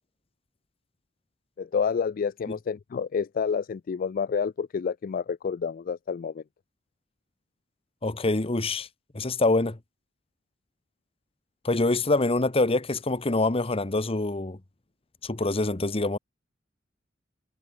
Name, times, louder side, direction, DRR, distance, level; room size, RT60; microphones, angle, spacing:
voice 1, 1.6-6.4, left 6 dB, 45° left, 0.3 m, -29 dB
voice 2, 8.0-8.9 9.1-9.8 11.6-14.6 15.2-16.2, left 2 dB, 30° left, 1.1 m, -25 dB
head